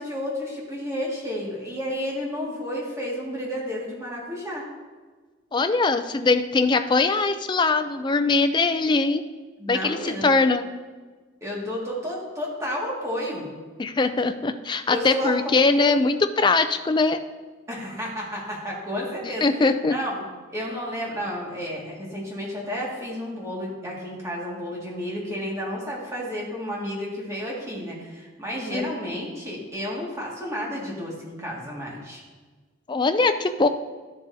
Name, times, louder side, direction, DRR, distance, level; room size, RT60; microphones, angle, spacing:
voice 1, 0.0-4.7 9.6-10.3 11.4-13.5 14.9-16.0 17.7-20.2 20.5-32.2, equal, 15° right, -4 dB, 1.9 m, -31 dB
voice 2, 5.5-9.2 9.7-10.7 13.8-17.2 19.2-19.9 28.7-29.0 32.9-33.7, left 3 dB, 25° left, 8 dB, 0.4 m, -21 dB
12.5 x 7.1 x 2.7 m, 1.4 s
head